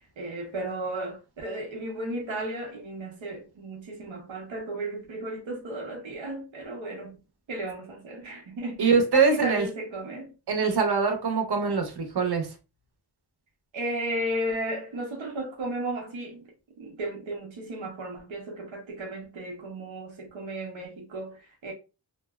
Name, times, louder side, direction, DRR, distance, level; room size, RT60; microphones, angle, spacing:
voice 1, 0.2-7.2 7.5-10.3 13.7-16.4 16.8-21.7, right 1 dB, 85° right, 0.8 m, -34 dB
voice 2, 8.8-9.7 10.5-12.5, right 5 dB, 55° right, 0.8 m, -23 dB
2.6 x 2.1 x 2.3 m
cardioid pair, 50°, 46 cm